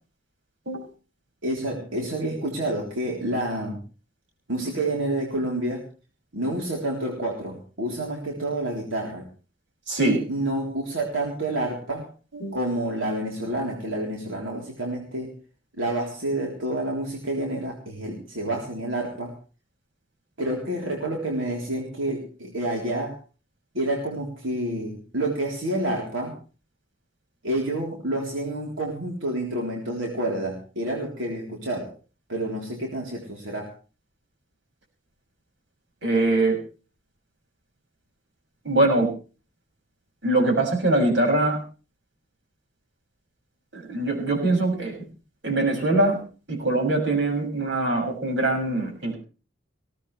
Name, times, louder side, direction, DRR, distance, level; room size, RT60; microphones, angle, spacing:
voice 1, 1.4-3.8 4.5-5.9 6.3-9.3 10.0-12.1 12.5-15.3 15.8-19.3 20.4-23.2 23.7-26.4 27.4-31.9 32.3-33.7, right 1 dB, 85° right, -1 dB, 3.7 m, -28 dB
voice 2, 9.9-10.2 12.3-12.5 36.0-36.6 38.6-39.1 40.2-41.6 43.7-45.0 45.4-46.2 46.5-49.1, right 2 dB, 65° right, 1 dB, 6.7 m, -22 dB
20.0 x 17.0 x 3.3 m, 0.36 s
head